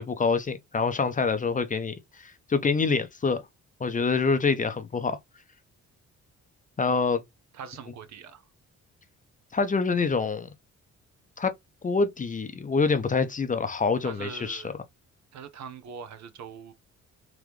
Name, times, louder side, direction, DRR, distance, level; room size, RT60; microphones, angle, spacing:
voice 1, 0.0-3.4 3.8-5.2 6.8-7.2 9.5-10.5 11.4-11.5 11.8-14.6, left 4 dB, 25° left, 0.6 m, -26 dB
voice 2, 7.5-8.4 14.0-14.7 15.3-16.7, right 6 dB, 65° right, 0.8 m, -42 dB
3.7 x 3.0 x 3.2 m
cardioid pair, 90°, 30 cm